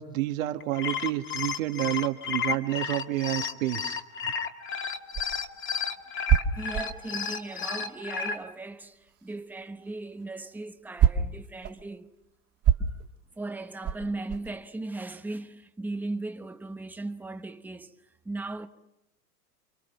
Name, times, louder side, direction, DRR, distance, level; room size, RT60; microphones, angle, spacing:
voice 1, 0.0-4.3, right 15 dB, 60° right, 2.0 m, -30 dB
sound 1, 0.6-8.4, left 6 dB, 25° left, 2.1 m, -32 dB
sound 2, 4.8-8.5 8.8-14.6, right 8 dB, 30° right, 2.0 m, -28 dB
voice 2, 6.5-12.1 12.8-13.0 13.3-18.7, right 2 dB, 5° right, 1.1 m, -37 dB
29.0 x 24.5 x 5.9 m
hypercardioid pair, 115°, 46 cm